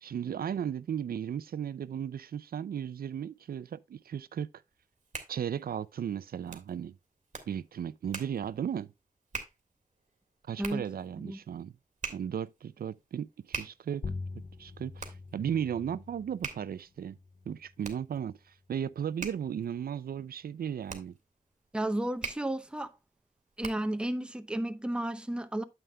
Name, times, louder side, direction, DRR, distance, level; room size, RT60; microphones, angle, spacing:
voice 1, 0.0-4.5 5.3-6.9 7.5-8.9 10.5-11.7 12.1-14.0 14.6-17.2 17.5-21.2, right 8 dB, 85° right, 0.4 m, -35 dB
Hands, 4.7-24.0, right 5 dB, 55° right, 1.8 m, -45 dB
sound 1, 14.0-19.1, left 4 dB, 50° left, 0.6 m, -44 dB
voice 2, 21.7-22.9 23.6-25.6, right 1 dB, 5° right, 0.6 m, -32 dB
9.1 x 8.0 x 2.2 m
wide cardioid pair, 135°, 15 cm